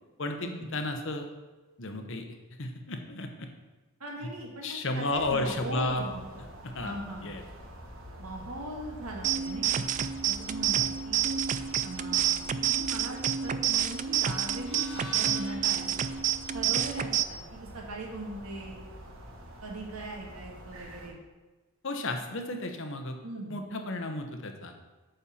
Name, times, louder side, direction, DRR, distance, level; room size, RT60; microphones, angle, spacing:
voice 1, 0.2-1.3 1.8-2.3 2.6-3.5 4.6-6.1 6.6-7.0 7.2-7.4 21.8-23.2 23.5-24.7, left 2 dB, 60° left, 5 dB, 1.1 m, -33 dB
voice 2, 4.0-6.4 6.8-7.3 8.2-9.9 10.2-11.2 11.8-12.4 12.7-15.9 16.5-18.8 19.6-21.2 23.2-23.5, right 2 dB, 85° right, 0 dB, 2.0 m, -40 dB
sound 1, 5.1-21.1, equal, 60° right, 1.5 m, -47 dB
sound 2, 9.2-17.2, right 10 dB, 35° right, 0.3 m, -29 dB
sound 3, 14.5-18.7, left 1 dB, 5° left, 2.3 m, -49 dB
8.9 x 4.4 x 7.2 m, 1.2 s
head